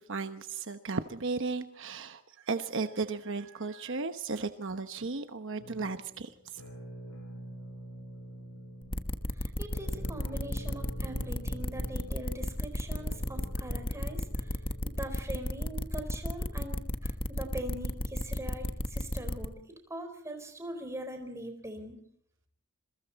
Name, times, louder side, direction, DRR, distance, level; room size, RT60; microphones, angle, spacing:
voice 1, 0.0-6.5, right 4 dB, 60° right, 9 dB, 1.0 m, -35 dB
sound 1, 5.6-15.5, right 1 dB, 75° left, 7.7 m, -47 dB
sound 2, 8.9-19.5, left 1 dB, 25° left, 1.3 m, -33 dB
voice 2, 9.3-22.0, right 1 dB, 15° right, 6 dB, 4.3 m, -42 dB
27.5 x 22.5 x 4.2 m, 0.67 s
head